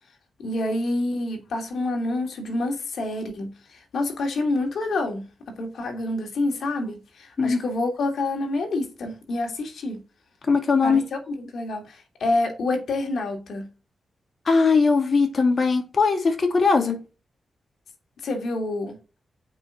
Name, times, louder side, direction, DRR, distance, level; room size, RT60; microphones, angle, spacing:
voice 1, 0.4-3.5 3.9-10.0 10.8-13.7 18.2-19.0, left 2 dB, 75° left, 2.9 m, -27 dB
voice 2, 10.5-11.1 14.5-17.0, left 4 dB, 55° left, 2.7 m, -20 dB
8.1 x 5.7 x 6.0 m
cardioid pair, 50°, 0 cm